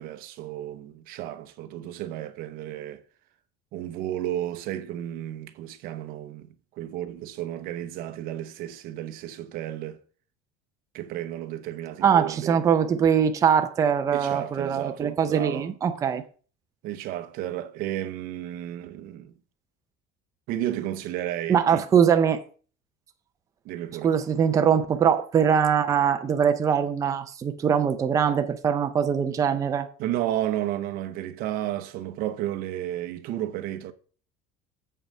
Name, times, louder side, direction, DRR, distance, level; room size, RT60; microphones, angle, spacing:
voice 1, 0.0-3.0 3.7-6.5 6.8-10.0 10.9-12.6 14.1-15.7 16.8-19.3 20.5-21.8 23.6-24.1 30.0-33.9, right 12 dB, 55° right, 0.8 m, -32 dB
voice 2, 12.0-16.2 21.5-22.4 24.0-29.9, right 7 dB, 20° right, 0.5 m, -22 dB
7.5 x 5.6 x 5.4 m
cardioid pair, 175°, 17 cm